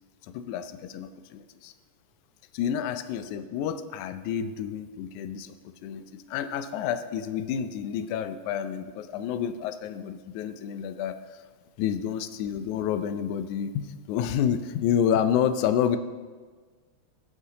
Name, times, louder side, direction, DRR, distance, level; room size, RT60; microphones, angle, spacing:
voice 1, 0.3-1.7 2.5-5.6 5.8-6.0 6.3-11.2 11.8-16.0, left 9 dB, 80° left, 9 dB, 1.8 m, -29 dB
20.5 x 8.0 x 2.9 m, 1.5 s
omnidirectional pair, 3.9 m